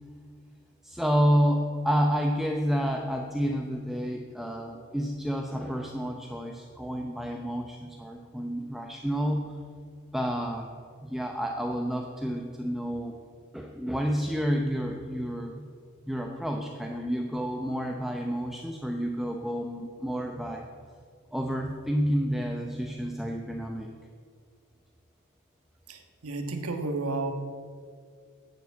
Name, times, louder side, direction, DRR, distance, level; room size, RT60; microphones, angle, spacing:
voice 1, 0.8-9.6 10.1-10.7 11.0-13.1 13.5-15.7 16.1-20.6 21.3-23.9, equal, ahead, 1 dB, 0.8 m, -29 dB
voice 2, 25.9-27.3, right 3 dB, 85° right, 6 dB, 1.5 m, -32 dB
11.5 x 8.0 x 8.2 m, 2.1 s
head